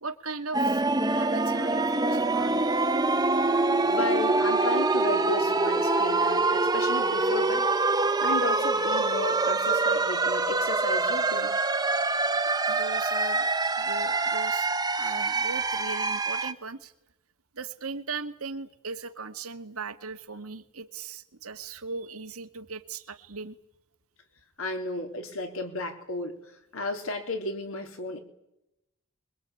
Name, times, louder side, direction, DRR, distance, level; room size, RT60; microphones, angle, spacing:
voice 1, 0.0-2.7 12.7-13.5 13.8-16.9 17.5-23.6, right 4 dB, 85° right, 8 dB, 1.9 m, -39 dB
sound 1, 0.5-16.5, right 3 dB, 20° right, 1.1 m, -25 dB
voice 2, 3.8-7.7 8.2-11.5 24.6-26.4 26.7-28.2, left 2 dB, 70° left, 5 dB, 3.7 m, -33 dB
23.0 x 22.0 x 8.5 m, 0.84 s
head